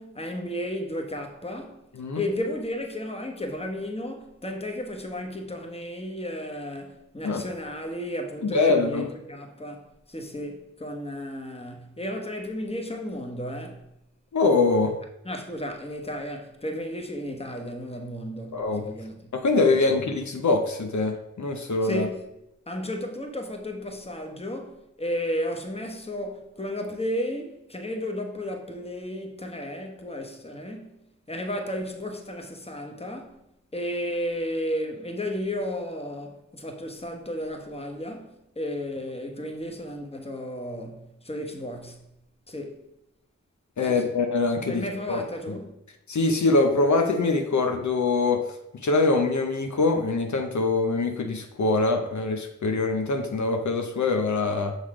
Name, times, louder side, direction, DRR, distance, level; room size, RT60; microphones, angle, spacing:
voice 1, 0.0-1.8 2.1-13.9 15.2-19.3 21.8-22.2 22.7-31.0 31.3-33.4 33.7-42.0 42.5-42.8 43.8-44.1 44.7-45.8, equal, 20° left, 1.1 m, -33 dB
voice 2, 8.4-9.1 14.3-15.0 18.5-18.9 19.3-22.1 43.8-45.2 46.1-48.5 48.8-54.8, left 3 dB, 75° left, 0.7 m, -23 dB
6.3 x 4.0 x 4.8 m
cardioid pair, 50°, 29 cm